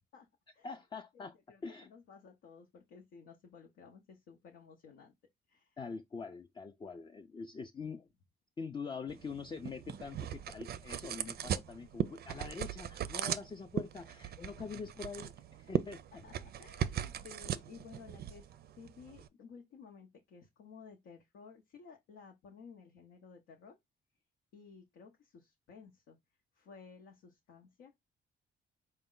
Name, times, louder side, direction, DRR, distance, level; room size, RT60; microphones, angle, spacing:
voice 1, 0.6-1.4 1.6-1.9 5.8-8.1 8.6-15.3 15.6-16.2, left 5 dB, 25° left, 0.4 m, -44 dB
voice 2, 1.1-5.1 5.5-5.8 14.4-14.7 14.9-15.0 16.1-18.5 18.8-23.8 24.5-26.2 26.6-28.0, left 5 dB, 80° left, 0.8 m, -55 dB
sound 1, 9.1-19.3, right 9 dB, 55° right, 0.4 m, -39 dB
4.1 x 2.2 x 3.7 m
cardioid pair, 90°, 20 cm